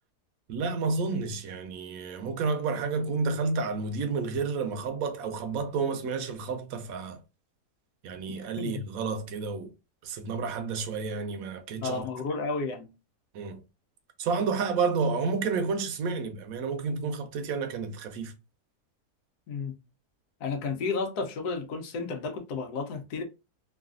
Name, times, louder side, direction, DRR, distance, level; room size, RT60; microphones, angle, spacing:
voice 1, 0.5-7.2 8.0-9.7 10.0-12.0 13.3-13.6 14.2-18.3, right 4 dB, 70° right, 1.0 m, -30 dB
voice 2, 11.7-12.9 19.5-19.7 20.4-23.2, left 4 dB, 85° left, 1.2 m, -32 dB
3.2 x 2.4 x 2.4 m
omnidirectional pair, 1.7 m